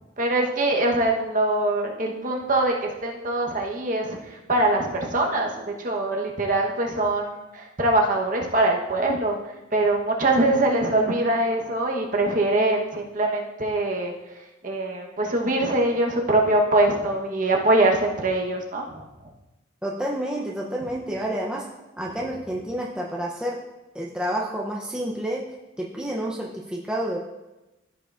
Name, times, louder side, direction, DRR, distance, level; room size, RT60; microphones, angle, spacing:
voice 1, 0.2-9.4 9.7-14.1 14.6-19.0, right 2 dB, 40° right, 1 dB, 1.0 m, -23 dB
voice 2, 19.8-21.7 22.0-23.6 23.9-25.4 25.8-27.2, right 1 dB, 5° right, -3 dB, 0.6 m, -29 dB
14.0 x 5.6 x 2.5 m, 1.0 s
head